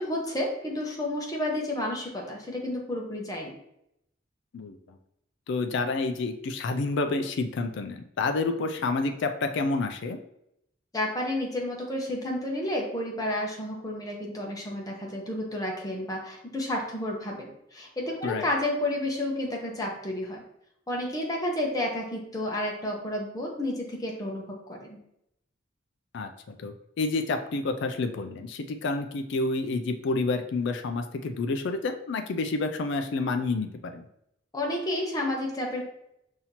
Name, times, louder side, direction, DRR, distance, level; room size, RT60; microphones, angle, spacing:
voice 1, 0.0-3.5 10.9-20.4 20.9-25.0 34.5-35.8, left 1 dB, 20° left, -1 dB, 0.9 m, -31 dB
voice 2, 4.5-5.0 5.5-10.2 18.2-18.5 26.1-34.0, left 3 dB, 65° left, 6 dB, 0.4 m, -29 dB
5.6 x 2.7 x 2.9 m, 0.78 s
head